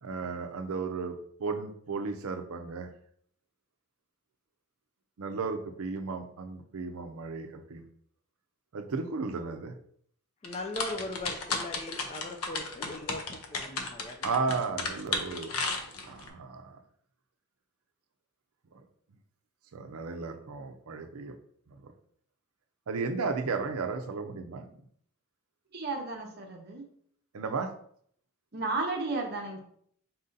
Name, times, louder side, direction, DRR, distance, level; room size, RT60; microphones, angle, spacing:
voice 1, 0.0-2.9 5.2-7.8 8.7-9.7 14.2-15.7 16.0-16.8 18.7-18.8 19.7-21.4 21.7-21.9 22.9-24.7 27.3-27.7, right 4 dB, 80° right, 6 dB, 0.5 m, -34 dB
sound 1, 10.4-16.3, left 3 dB, 90° left, 0.7 m, -34 dB
voice 2, 10.4-13.2 13.5-14.4, left 2 dB, 30° left, 4 dB, 0.3 m, -39 dB
voice 3, 25.7-26.8 28.5-29.6, right 3 dB, 45° right, 2 dB, 0.7 m, -33 dB
4.2 x 2.7 x 3.7 m, 0.64 s
head